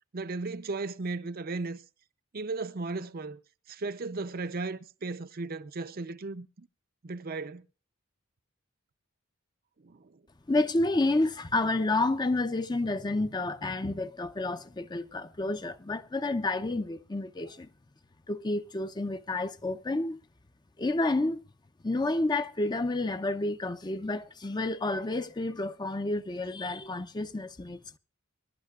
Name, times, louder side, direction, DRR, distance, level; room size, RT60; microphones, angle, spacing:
voice 1, 0.1-1.8 2.3-3.4 3.7-6.7 7.0-7.6 9.8-10.2, right 3 dB, 45° right, 0.6 m, -36 dB
voice 2, 10.5-17.7 18.3-20.2 20.8-21.4 21.8-28.0, left 2 dB, 20° left, 0.5 m, -30 dB
23.5 x 11.5 x 2.4 m
head